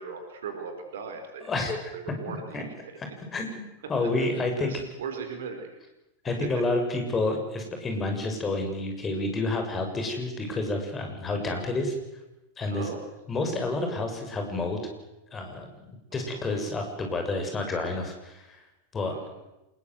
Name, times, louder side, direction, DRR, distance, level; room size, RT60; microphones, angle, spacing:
voice 1, 0.0-1.5 1.9-2.9 4.0-4.1 4.6-5.7 6.4-6.5 12.7-13.0 16.1-16.4 19.0-19.3, right 5 dB, 60° right, 5 dB, 4.7 m, -38 dB
voice 2, 1.4-1.9 2.3-2.6 3.0-3.1 3.3-4.7 6.2-11.9 12.6-12.9 13.3-14.8 15.3-18.6 18.9-19.1, left 2 dB, 20° left, 4 dB, 6.8 m, -29 dB
26.5 x 21.0 x 8.0 m, 0.96 s
figure-of-eight pair, 90°, 0 cm